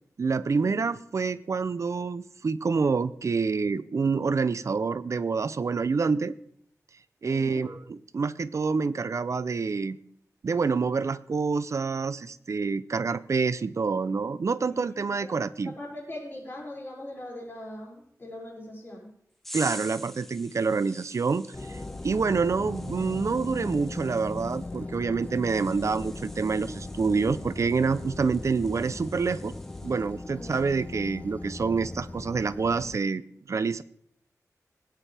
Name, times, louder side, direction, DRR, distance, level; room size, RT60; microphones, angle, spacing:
voice 1, 0.2-6.3 7.2-10.0 10.4-15.7 19.5-21.5 22.0-29.5 29.8-33.2 33.5-33.8, right 4 dB, 55° right, 15 dB, 0.6 m, -27 dB
voice 2, 7.2-7.7 14.6-14.9 15.2-15.3 15.6-19.1 21.7-21.8 30.3-30.6, left 1 dB, 40° left, -4 dB, 5.8 m, -41 dB
sound 1, 19.4-30.1 30.5-30.8, equal, 5° left, 1.0 m, -47 dB
sound 2, 21.5-33.0, left 2 dB, 25° left, 0.4 m, -38 dB
19.5 x 9.1 x 3.4 m, 0.66 s
wide cardioid pair, 95°, 6 cm